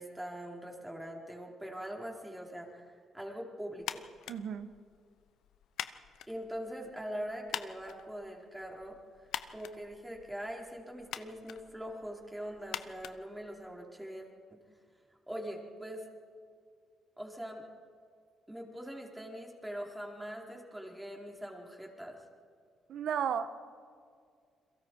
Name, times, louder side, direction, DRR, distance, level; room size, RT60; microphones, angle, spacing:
voice 1, 0.0-4.0 6.3-14.6 15.3-16.1 17.2-17.6 18.5-22.2, equal, 10° right, 0 dB, 4.3 m, -43 dB
sound 1, 3.8-14.0, left 11 dB, 80° left, 0.9 m, -46 dB
voice 2, 4.3-4.7 22.9-23.6, right 8 dB, 70° right, 11 dB, 1.4 m, -34 dB
29.5 x 22.5 x 4.7 m, 2.1 s
cardioid pair, 90°, 0 cm